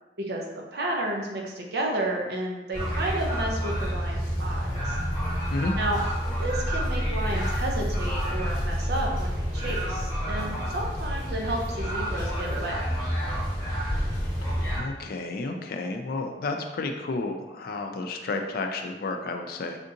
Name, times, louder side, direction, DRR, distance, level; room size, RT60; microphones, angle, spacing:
voice 1, 0.7-5.0 5.8-6.0 6.3-12.9, right 1 dB, 65° right, 0 dB, 0.6 m, -31 dB
sound 1, 2.7-14.8, equal, 20° left, 1.2 m, -28 dB
voice 2, 14.7-19.8, left 3 dB, 55° left, 4 dB, 0.4 m, -31 dB
3.4 x 2.6 x 2.7 m, 1.1 s
head